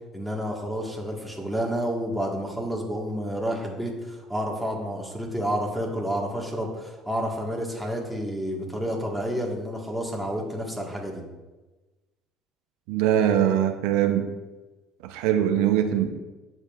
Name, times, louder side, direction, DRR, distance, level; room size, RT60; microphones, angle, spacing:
voice 1, 0.1-11.2, equal, ahead, -2 dB, 1.6 m, -30 dB
voice 2, 12.9-14.3 15.0-16.1, right 10 dB, 85° right, 6 dB, 0.6 m, -22 dB
10.0 x 7.0 x 2.4 m, 1.2 s
supercardioid pair, 100°, 0 cm